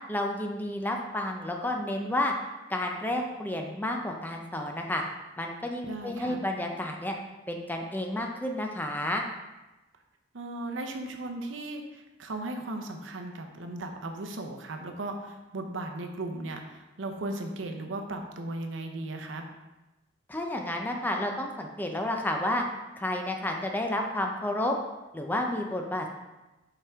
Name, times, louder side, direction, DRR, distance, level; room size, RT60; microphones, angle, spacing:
voice 1, 0.1-2.3 2.7-5.0 5.4-7.1 7.5-9.2 20.3-22.6 23.0-24.7 25.1-26.1, left 1 dB, 10° left, 2 dB, 0.5 m, -31 dB
voice 2, 5.9-6.4 10.3-19.4, right 2 dB, 85° right, 4 dB, 0.7 m, -36 dB
5.5 x 5.0 x 3.5 m, 1.1 s
head